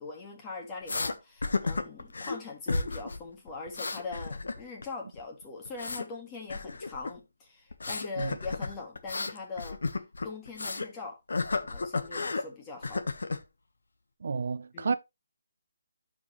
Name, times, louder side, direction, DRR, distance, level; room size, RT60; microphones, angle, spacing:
voice 1, 0.0-9.8 10.2-11.2 11.6-13.0 14.7-14.9, left 4 dB, 15° left, 1.7 m, -41 dB
sound 1, 0.9-1.1 1.4-2.4 2.7-3.2 3.5-4.8 5.1-6.1 6.5-7.2 7.7-10.9 11.3-12.4 12.8-13.4, left 3 dB, 80° left, 1.3 m, -33 dB
voice 2, 14.2-14.9, right 5 dB, 60° right, 0.5 m, -31 dB
12.0 x 5.1 x 3.1 m
hypercardioid pair, 165°, 0 cm